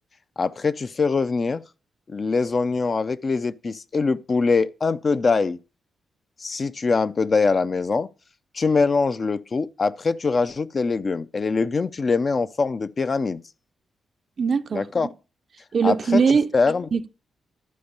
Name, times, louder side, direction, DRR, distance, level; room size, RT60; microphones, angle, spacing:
voice 1, 0.4-1.6 2.1-5.6 6.4-8.1 8.5-13.4 14.7-15.1 15.8-16.2 16.5-16.9, left 4 dB, 35° left, 0.4 m, -23 dB
voice 2, 14.4-14.9 15.7-16.5 16.9-17.1, right 5 dB, 45° right, 0.4 m, -20 dB
11.5 x 4.5 x 6.6 m
cardioid pair, 125°, 0 cm